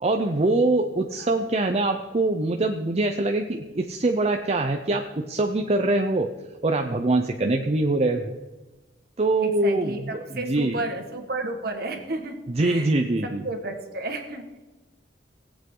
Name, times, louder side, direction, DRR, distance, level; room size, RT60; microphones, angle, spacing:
voice 1, 0.0-6.3 6.6-8.4 9.2-10.8 12.5-13.4, right 2 dB, 35° right, 4 dB, 0.6 m, -24 dB
voice 2, 9.4-12.9 13.2-14.5, right 2 dB, 55° right, 4 dB, 1.6 m, -32 dB
18.0 x 8.2 x 3.8 m, 1.1 s
head